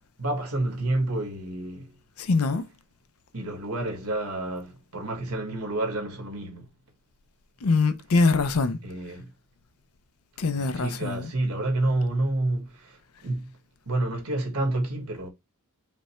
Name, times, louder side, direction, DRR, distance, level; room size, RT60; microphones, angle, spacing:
voice 1, 0.2-1.9 3.3-6.7 8.8-9.3 10.5-13.5 13.8-15.3, right 2 dB, 80° right, 1.5 m, -29 dB
voice 2, 2.2-2.6 7.6-8.8 10.4-11.3, left 3 dB, 75° left, 0.6 m, -23 dB
5.1 x 2.2 x 4.3 m
head